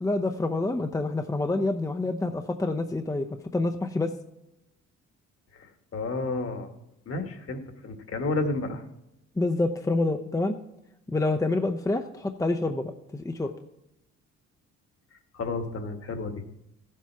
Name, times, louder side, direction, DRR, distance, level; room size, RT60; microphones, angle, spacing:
voice 1, 0.0-3.3 3.5-4.1 9.4-10.5 11.1-13.5, left 2 dB, 10° left, 6 dB, 0.7 m, -27 dB
voice 2, 5.6-6.7 7.1-8.8 15.3-16.4, left 3 dB, 50° left, 6 dB, 1.7 m, -31 dB
14.5 x 7.6 x 4.6 m, 0.86 s
cardioid pair, 90°, 30 cm